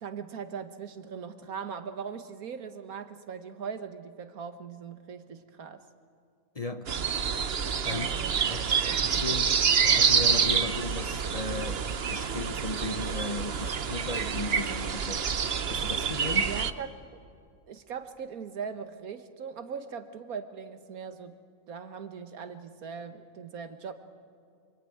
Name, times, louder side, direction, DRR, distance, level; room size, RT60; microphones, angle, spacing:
voice 1, 0.0-5.8 7.8-9.2 16.4-17.0 17.7-21.4 21.7-23.9, right 6 dB, 85° right, 9 dB, 1.8 m, -40 dB
voice 2, 6.5-6.9 7.9-8.1 8.5-9.6 9.8-15.3 15.7-16.5, left 2 dB, 30° left, 8 dB, 0.8 m, -36 dB
sound 1, 6.9-16.7, right 7 dB, 50° right, 1.0 m, -27 dB
26.0 x 24.0 x 9.4 m, 2.3 s
omnidirectional pair, 1.5 m